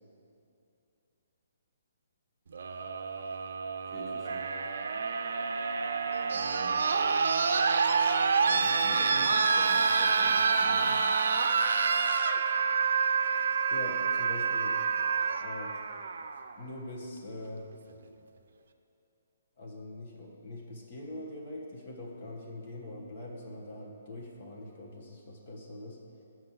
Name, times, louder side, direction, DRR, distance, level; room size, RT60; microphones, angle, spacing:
sound 1, 2.5-16.5 17.7-17.8, right 5 dB, 70° right, 0.5 m, -28 dB
voice 1, 3.8-4.5 6.3-6.9 8.5-11.0, right 1 dB, 15° left, -5 dB, 1.2 m, -44 dB
voice 2, 13.7-14.8 15.4-15.7 16.6-17.7 19.6-26.0, left 1 dB, 50° left, -1 dB, 1.2 m, -42 dB
7.5 x 6.0 x 5.6 m, 2.7 s
hypercardioid pair, 160°, 0 cm